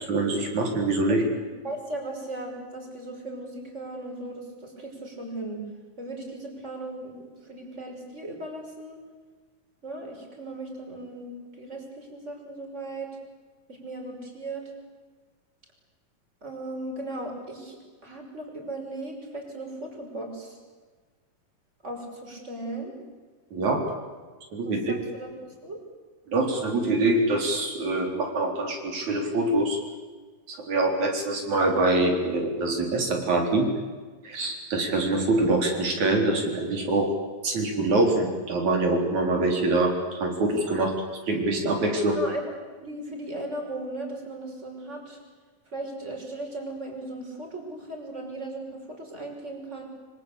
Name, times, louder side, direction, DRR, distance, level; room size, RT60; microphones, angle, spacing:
voice 1, 0.1-1.2 23.5-23.8 24.5-25.0 26.3-29.8 30.5-33.7 34.2-37.1 37.4-40.9 41.3-42.2, right 2 dB, 55° right, 2 dB, 5.3 m, -24 dB
voice 2, 1.6-5.6 6.0-9.0 9.8-13.1 13.7-14.7 16.4-20.6 21.8-22.9 24.6-25.8 42.1-42.5 42.8-45.2 45.7-49.9, right 2 dB, 20° right, 2 dB, 5.9 m, -37 dB
25.5 x 25.0 x 8.4 m, 1.4 s
omnidirectional pair, 3.9 m